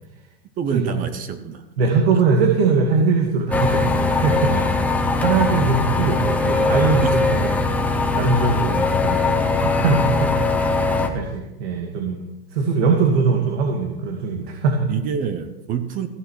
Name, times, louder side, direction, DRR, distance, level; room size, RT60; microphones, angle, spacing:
voice 1, 0.6-1.6 4.5-4.8 5.5-5.6 7.0-7.2 14.9-16.1, right 7 dB, 25° right, 10 dB, 0.9 m, -27 dB
voice 2, 1.8-4.5 5.2-7.5 8.1-10.7 11.0-12.2 12.5-14.9, right 4 dB, 70° right, 2 dB, 2.3 m, -21 dB
sound 1, 3.5-11.1, left 3 dB, 5° left, 0.8 m, -20 dB
15.5 x 8.9 x 6.4 m, 0.99 s
supercardioid pair, 160°, 33 cm